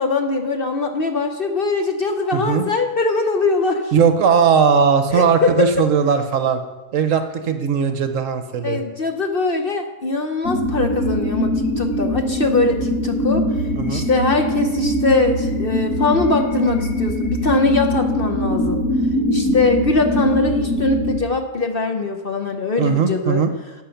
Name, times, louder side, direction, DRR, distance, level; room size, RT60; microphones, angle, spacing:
voice 1, 0.0-3.9 5.1-5.9 8.6-13.5 13.9-18.8 19.3-23.4, left 3 dB, 45° left, 5 dB, 0.9 m, -21 dB
voice 2, 2.3-2.6 3.9-6.6 6.9-8.8 13.7-14.1 22.8-23.5, right 6 dB, 60° right, 8 dB, 1.1 m, -18 dB
sound 1, 10.4-21.2, equal, 85° left, 2.1 m, -22 dB
12.0 x 7.8 x 5.8 m, 1.2 s
omnidirectional pair, 1.6 m